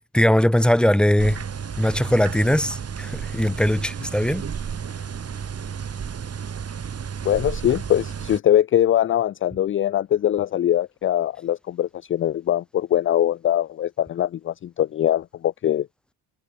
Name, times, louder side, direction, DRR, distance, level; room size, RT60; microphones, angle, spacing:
voice 1, 0.1-1.4 1.8-4.4, equal, ahead, 2.4 m, -20 dB
sound 1, 1.2-8.4, right 7 dB, 30° right, 2.6 m, -32 dB
voice 2, 7.2-15.9, left 11 dB, 30° left, 0.5 m, -22 dB
supercardioid pair, 75°, 45 cm